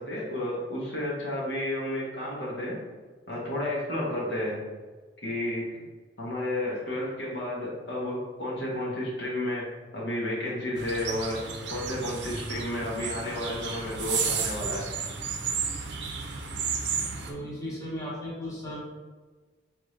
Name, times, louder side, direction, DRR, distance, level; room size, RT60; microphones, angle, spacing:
voice 1, 0.0-2.8 3.3-4.6 5.2-5.7 6.2-11.4 11.7-14.9, left 1 dB, 65° left, -5 dB, 1.2 m, -32 dB
sound 1, 10.8-17.3, right 6 dB, 70° right, 0.6 m, -32 dB
voice 2, 17.3-18.8, equal, 20° left, -7 dB, 1.0 m, -36 dB
3.7 x 3.5 x 3.2 m, 1.4 s
head